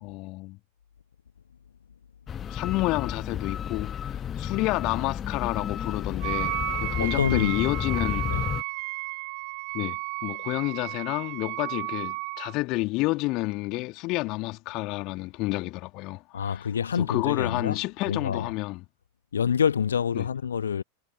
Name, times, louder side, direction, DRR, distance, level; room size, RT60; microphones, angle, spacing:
voice 1, 0.0-0.6 2.5-8.3 9.7-16.6 17.0-18.8 20.2-20.3, left 22 dB, 40° left, 2.3 m, -30 dB
sound 1, 2.3-8.6, left 9 dB, 25° left, 1.2 m, -32 dB
Wind instrument woodwind instrument, 6.2-12.5, right 37 dB, 45° right, 0.8 m, -33 dB
voice 2, 7.0-7.6 8.3-8.4 16.3-17.8 18.1-18.5 19.3-20.8, left 7 dB, 70° left, 1.1 m, -26 dB
figure-of-eight pair, 90°, 0 cm